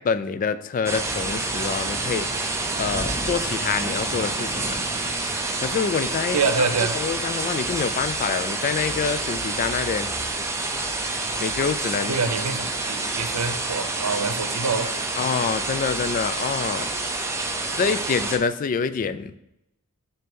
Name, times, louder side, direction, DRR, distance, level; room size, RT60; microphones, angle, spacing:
voice 1, 0.0-2.3 2.8-4.8 5.6-6.7 6.9-10.1 11.4-12.2 15.2-16.9 17.8-19.4, left 6 dB, 35° left, 12 dB, 0.3 m, -26 dB
sound 1, 0.9-18.4, right 2 dB, 10° right, 0.6 m, -28 dB
voice 2, 6.3-6.9 12.1-14.9, right 4 dB, 90° right, 8 dB, 0.7 m, -25 dB
7.5 x 2.8 x 5.4 m, 0.85 s
head